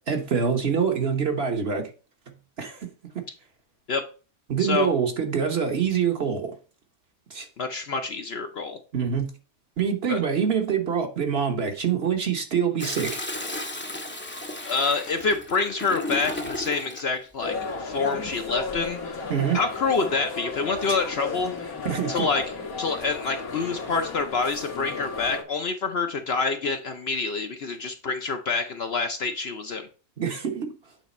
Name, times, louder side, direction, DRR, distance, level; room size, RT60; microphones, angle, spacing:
voice 1, 0.1-1.8 2.6-2.9 4.5-6.5 7.3-7.5 8.9-9.3 9.8-13.2 19.3-19.6 21.8-22.3 30.2-30.7, right 7 dB, 50° right, 1.1 m, -25 dB
voice 2, 7.6-8.8 10.1-10.2 14.0-14.2 14.6-19.2 19.5-21.7 22.1-22.4 22.8-29.9, left 4 dB, 55° left, 0.8 m, -27 dB
Toilet flush, 12.8-17.1 18.5-19.0, left 2 dB, 15° left, 0.5 m, -34 dB
sound 1, 17.4-25.4, left 4 dB, 80° left, 1.8 m, -34 dB
8.2 x 3.5 x 4.1 m
omnidirectional pair, 1.5 m